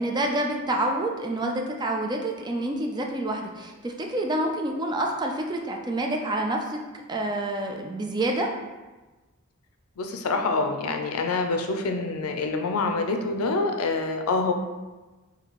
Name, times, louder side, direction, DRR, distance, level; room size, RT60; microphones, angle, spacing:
voice 1, 0.0-6.8 7.1-8.5, right 1 dB, 20° right, 1 dB, 0.4 m, -28 dB
voice 2, 10.0-14.5, left 3 dB, 90° left, 5 dB, 0.5 m, -26 dB
4.0 x 2.7 x 3.0 m, 1.2 s
head